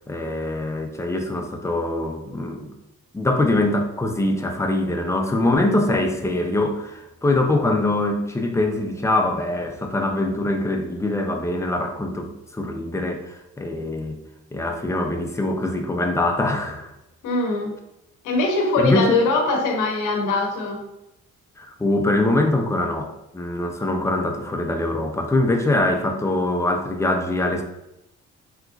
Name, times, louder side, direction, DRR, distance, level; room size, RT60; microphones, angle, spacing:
voice 1, 0.1-2.7 3.1-14.2 14.5-16.9 18.8-19.2 21.6-27.6, left 2 dB, 10° left, 3 dB, 0.5 m, -23 dB
voice 2, 17.2-17.7 18.2-20.8, left 3 dB, 85° left, 2 dB, 0.8 m, -22 dB
3.7 x 2.9 x 2.5 m, 0.89 s
cardioid pair, 90°, 30 cm